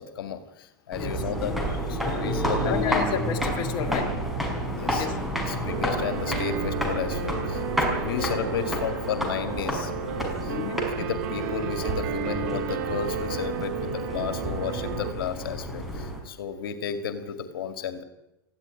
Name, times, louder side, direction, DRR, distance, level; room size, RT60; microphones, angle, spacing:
voice 1, 0.0-3.0 4.7-5.1 5.4-9.9 10.4-10.6 11.0-18.0, left 7 dB, 80° left, 10 dB, 2.2 m, -33 dB
sound 1, 0.9-16.2, equal, ahead, 5.3 m, -30 dB
voice 2, 2.6-4.1 4.8-5.2 5.4-5.6 8.0-8.2 10.5-10.8, left 8 dB, 40° left, 5 dB, 2.6 m, -31 dB
sound 2, 5.7-15.1, right 7 dB, 55° right, 3.2 m, -33 dB
18.5 x 15.0 x 9.8 m, 0.92 s
supercardioid pair, 135°, 12 cm